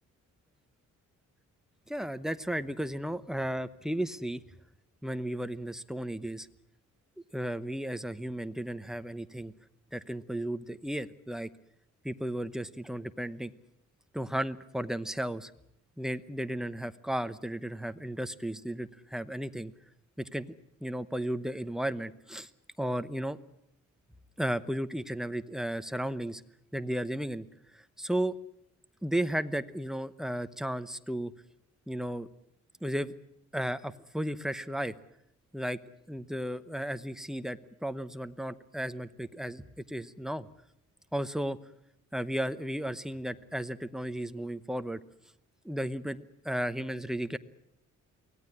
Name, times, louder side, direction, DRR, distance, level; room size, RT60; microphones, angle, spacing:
voice 1, 1.9-4.4 5.0-6.5 7.3-9.5 9.9-11.5 12.0-13.5 14.1-15.5 16.0-19.7 20.3-20.5 20.8-22.5 22.8-23.4 24.4-26.4 26.7-27.5 28.0-28.4 29.0-31.3 31.9-32.3 32.8-33.1 33.5-34.9 35.5-35.8 36.1-40.5 41.1-41.6 42.1-45.0 45.6-47.4, right 1 dB, ahead, 11 dB, 0.9 m, -34 dB
24.0 x 17.5 x 9.9 m, 0.77 s
cardioid pair, 135°, 30 cm